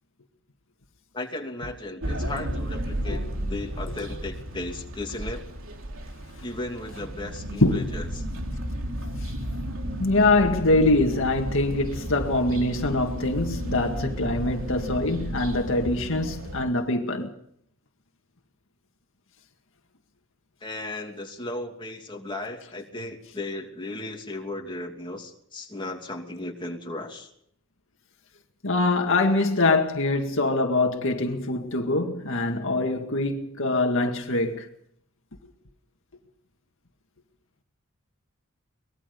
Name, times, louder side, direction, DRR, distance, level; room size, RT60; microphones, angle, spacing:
voice 1, 1.1-5.5 6.4-8.2 20.6-27.3, left 2 dB, 20° left, 2.9 m, -35 dB
sound 1, 2.0-16.6, equal, 65° right, 3.4 m, -33 dB
voice 2, 7.6-7.9 10.0-17.3 28.6-34.7, left 2 dB, 65° left, 2.1 m, -24 dB
23.5 x 21.0 x 5.4 m
head